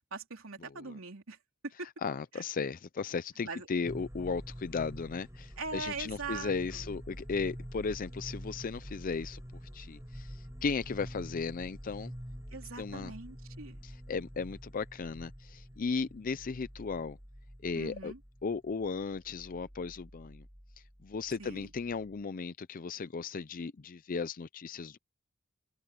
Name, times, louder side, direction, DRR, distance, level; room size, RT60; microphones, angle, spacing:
voice 1, 0.1-1.4 1.6-1.9 2.3-2.4 3.4-3.7 5.6-6.9 12.5-13.8 17.7-18.2 21.4-21.7, right 4 dB, 75° right, 3.4 m, -41 dB
voice 2, 0.6-1.0 2.0-9.4 9.7-12.1 12.8-13.1 13.8-17.2 17.6-18.1 18.4-20.4 21.0-25.0, left 5 dB, 40° left, 0.5 m, -36 dB
sound 1, 3.8-22.2, equal, 15° right, 6.4 m, -47 dB
open air
head